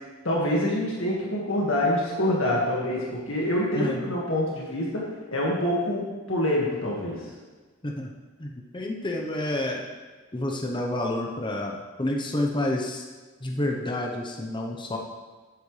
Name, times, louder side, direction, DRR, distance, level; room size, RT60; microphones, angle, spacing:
voice 1, 0.2-5.0 5.3-7.2, left 1 dB, 65° left, -4 dB, 2.0 m, -26 dB
voice 2, 3.7-4.1 7.8-8.1 8.4-9.8 10.3-13.0 13.4-15.0, left 1 dB, 25° left, 1 dB, 0.9 m, -29 dB
12.5 x 8.7 x 3.4 m, 1.3 s
head